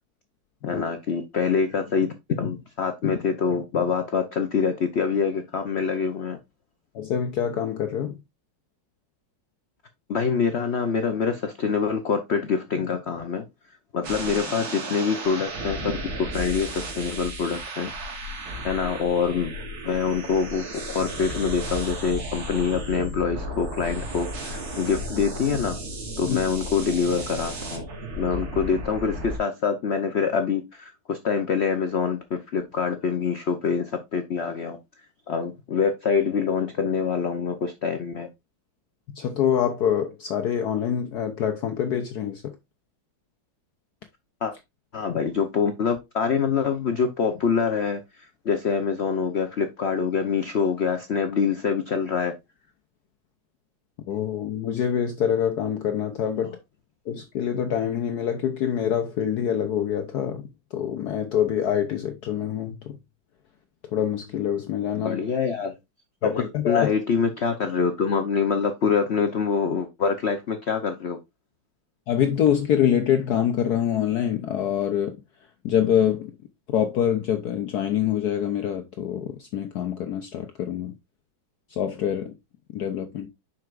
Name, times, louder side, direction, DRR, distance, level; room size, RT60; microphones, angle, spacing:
voice 1, 0.6-6.4 10.1-13.4 13.9-15.9 16.2-17.9 18.6-19.5 19.8-25.8 26.2-27.8 28.2-34.8 35.3-38.3 44.4-44.5 44.9-52.3 65.0-65.7 66.2-71.2, left 6 dB, 85° left, 0.5 m, -25 dB
voice 2, 6.9-8.2 26.3-26.4 39.1-42.6 54.1-56.6 57.1-63.0 63.9-65.2 66.2-66.9 72.1-75.2 75.6-76.3 76.7-80.9 81.7-82.4 82.7-83.3, left 9 dB, 65° left, 1.1 m, -25 dB
sound 1, 14.0-29.4, right 1 dB, 80° right, 2.6 m, -34 dB
7.6 x 5.8 x 2.5 m
omnidirectional pair, 2.2 m